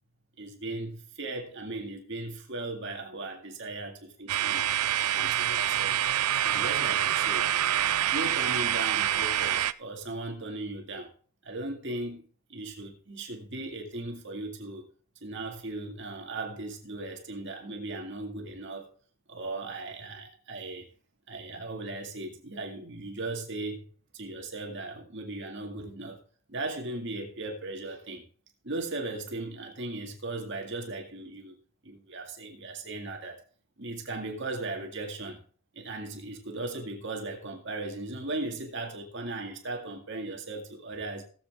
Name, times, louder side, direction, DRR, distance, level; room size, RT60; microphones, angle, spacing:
voice 1, 0.4-4.6 5.1-6.2 6.4-7.5 8.1-11.1 11.4-12.2 12.5-14.8 15.2-18.9 19.3-20.9 21.3-26.2 26.5-28.2 28.6-31.5 31.8-33.4 33.8-35.4 35.7-41.2, right 2 dB, 55° right, 2.1 m, -37 dB
sound 1, 4.3-9.7, right 11 dB, 85° right, 0.5 m, -26 dB
17.0 x 7.8 x 3.6 m
head